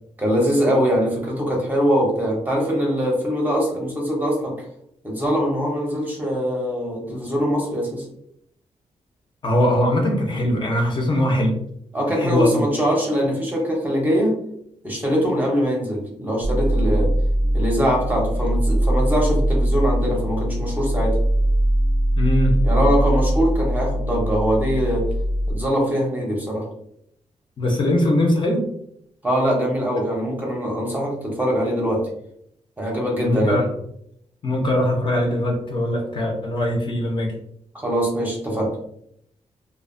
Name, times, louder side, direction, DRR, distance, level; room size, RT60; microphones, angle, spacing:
voice 1, 0.2-4.6 5.0-8.1 11.9-14.3 14.8-17.1 17.5-21.2 22.6-25.1 25.5-26.7 29.2-32.1 32.8-33.6 37.7-38.7, equal, 15° right, -2 dB, 0.6 m, -22 dB
voice 2, 9.4-11.5 12.2-12.6 22.2-22.5 27.6-28.7 33.2-33.7 34.4-37.3, left 1 dB, 40° left, 0 dB, 0.5 m, -21 dB
sound 1, 16.4-25.5, right 1 dB, 65° right, 0.4 m, -21 dB
2.6 x 2.1 x 2.5 m, 0.71 s
wide cardioid pair, 175°, 13 cm